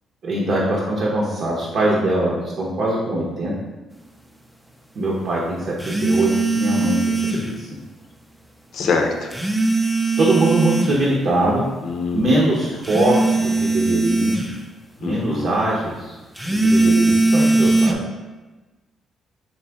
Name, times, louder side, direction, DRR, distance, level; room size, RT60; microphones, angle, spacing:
voice 1, 0.2-3.5 4.9-7.3 7.6-7.7 10.2-11.6 12.1-14.4 15.0-16.2 16.5-18.0, right 1 dB, 60° right, -5 dB, 0.8 m, -22 dB
sound 1, 5.8-7.5 9.3-11.0 12.8-14.6 16.4-17.9, right 2 dB, ahead, 0.5 m, -19 dB
voice 2, 8.7-9.1 11.8-12.5 15.0-15.5, left 4 dB, 65° left, 3 dB, 0.6 m, -24 dB
3.9 x 3.0 x 3.4 m, 1.2 s
cardioid pair, 90°, 0 cm